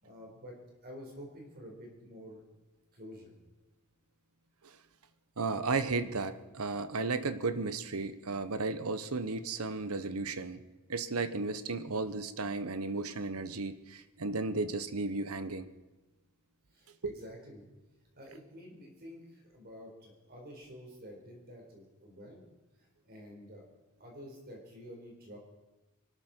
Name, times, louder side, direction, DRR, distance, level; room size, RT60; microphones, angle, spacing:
voice 1, 0.0-0.6 0.8-2.4 2.9-3.3 16.7-17.7 18.1-22.4 23.0-23.6 24.0-25.4, equal, 45° right, 0 dB, 4.6 m, -49 dB
voice 2, 5.4-10.6 10.9-15.7 17.0-17.1, right 3 dB, 80° right, 12 dB, 1.0 m, -34 dB
24.0 x 13.0 x 4.5 m, 1.1 s
head